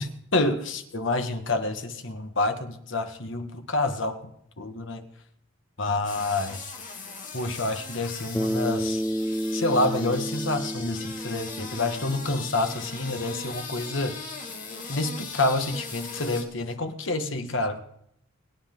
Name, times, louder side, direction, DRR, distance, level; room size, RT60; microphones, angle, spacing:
voice 1, 0.3-4.2 4.6-5.0 5.8-6.7 7.3-9.0 9.5-14.2 14.9-17.8, left 2 dB, 60° left, 7 dB, 1.6 m, -28 dB
sound 1, 6.0-16.4, left 4 dB, 40° left, 2.8 m, -39 dB
Bass guitar, 8.3-12.7, equal, 5° left, 0.5 m, -31 dB
23.5 x 9.9 x 3.9 m, 0.72 s
head